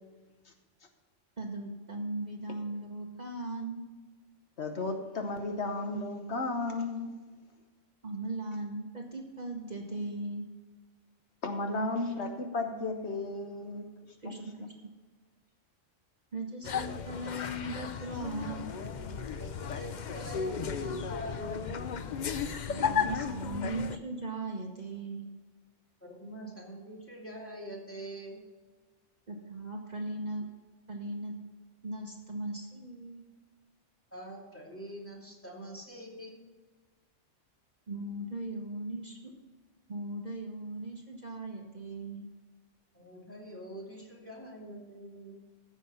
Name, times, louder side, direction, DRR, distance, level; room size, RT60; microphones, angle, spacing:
voice 1, 1.4-3.9 8.0-10.5 14.2-14.4 14.8-14.9 16.3-18.7 22.7-25.3 29.3-30.4 30.9-31.3 31.8-33.2 37.9-39.3 39.9-42.3, right 2 dB, 35° right, 1.2 m, -38 dB
voice 2, 4.6-7.1 11.4-13.8 14.2-14.3, left 2 dB, 65° left, 1.3 m, -34 dB
sound 1, 16.6-24.0, left 6 dB, 50° left, 0.6 m, -34 dB
voice 3, 19.4-21.6 26.0-28.4 34.1-36.4 42.9-45.4, equal, 10° left, 2.7 m, -45 dB
14.5 x 6.2 x 5.6 m
omnidirectional pair, 1.3 m